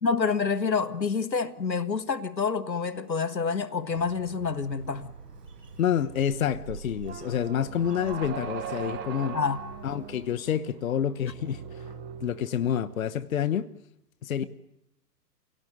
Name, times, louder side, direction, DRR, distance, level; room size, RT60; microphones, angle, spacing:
voice 1, 0.0-5.1 9.3-9.6, left 5 dB, 85° left, 1.4 m, -27 dB
Bird, 3.9-10.4, right 5 dB, 70° right, 5.4 m, -45 dB
voice 2, 5.8-9.4 9.8-11.6 12.2-13.7 14.2-14.4, left 9 dB, 55° left, 0.9 m, -28 dB
sound 1, 7.0-13.1, right 7 dB, 20° right, 0.9 m, -40 dB
27.5 x 17.5 x 9.1 m
figure-of-eight pair, 125°, 50 cm